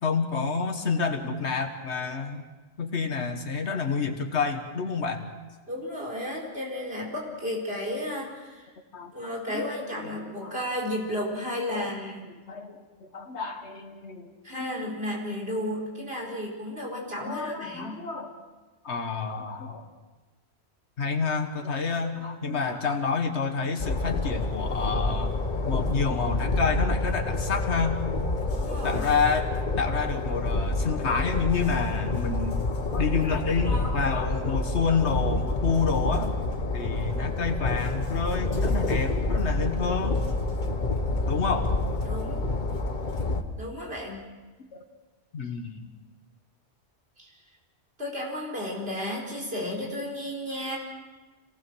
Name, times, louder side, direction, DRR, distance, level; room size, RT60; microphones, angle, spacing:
voice 1, 0.0-2.4 2.8-5.2 8.9-9.1 9.5-9.6 9.9-10.6 11.7-14.9 17.2-18.3 18.8-19.8 21.0-25.4 25.6-28.0 28.8-29.5 29.8-32.7 32.9-36.3 36.7-40.2 41.3-41.7 44.7-44.8 45.3-45.8, left 5 dB, 80° left, 5 dB, 1.6 m, -29 dB
voice 2, 5.7-8.7 9.1-12.2 14.4-18.0 28.5-29.1 42.0-42.4 43.6-44.2 47.2-47.3 48.0-50.8, left 1 dB, 60° right, -2 dB, 4.6 m, -33 dB
Train, 23.8-43.4, left 2 dB, 45° left, 1.4 m, -28 dB
26.5 x 18.5 x 6.3 m, 1.2 s
omnidirectional pair, 1.1 m